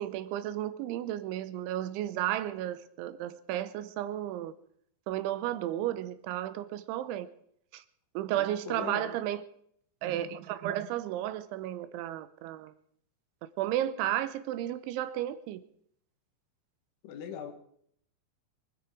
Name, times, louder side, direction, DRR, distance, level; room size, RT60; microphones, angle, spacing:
voice 1, 0.0-4.5 5.1-7.3 7.7-7.8 8.1-9.5 10.0-12.7 13.6-15.6, right 12 dB, 80° right, 3.2 m, -33 dB
voice 2, 8.4-9.1 17.0-17.5, left 8 dB, 80° left, 4.1 m, -40 dB
23.5 x 12.5 x 4.9 m
omnidirectional pair, 5.4 m